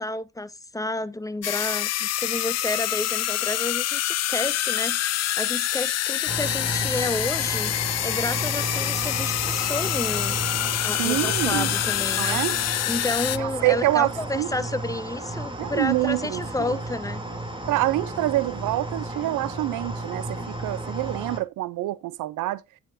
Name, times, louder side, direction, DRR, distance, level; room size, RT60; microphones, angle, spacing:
voice 1, 0.0-7.7 8.0-12.4 12.8-17.2, left 2 dB, 10° left, 0.7 m, -31 dB
sound 1, 1.4-13.4, left 13 dB, 60° left, 0.5 m, -26 dB
sound 2, 6.3-21.4, right 2 dB, 15° right, 2.9 m, -33 dB
voice 2, 11.0-11.7 12.2-12.6 13.4-14.5 15.6-16.8 17.7-22.6, right 17 dB, 85° right, 0.7 m, -26 dB
9.2 x 8.8 x 2.6 m
cardioid pair, 90°, 30 cm